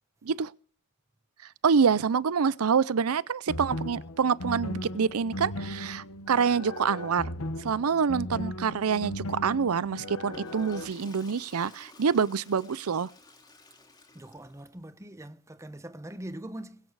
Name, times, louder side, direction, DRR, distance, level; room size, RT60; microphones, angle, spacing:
voice 1, 1.6-7.3 7.6-13.1, right 6 dB, 85° right, 0.6 m, -26 dB
sound 1, 3.5-10.9, left 1 dB, 75° left, 1.1 m, -37 dB
Water / Toilet flush, 10.2-14.7, left 2 dB, 20° left, 2.8 m, -53 dB
voice 2, 14.1-16.8, right 1 dB, 15° right, 0.9 m, -42 dB
21.0 x 8.5 x 4.8 m
head